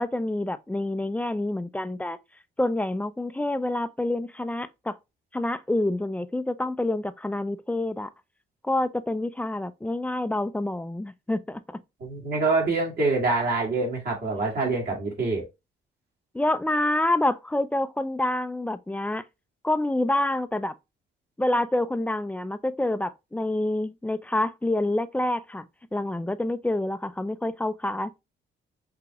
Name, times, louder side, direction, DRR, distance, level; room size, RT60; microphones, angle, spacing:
voice 1, 0.0-2.2 2.6-5.0 5.3-8.1 8.6-11.8 16.3-19.2 19.6-20.7 21.4-25.6 25.9-28.2, left 1 dB, 5° left, 0.4 m, -27 dB
voice 2, 12.0-15.5, right 3 dB, 55° right, 2.0 m, -25 dB
5.8 x 2.8 x 2.3 m
cardioid pair, 90°, 20 cm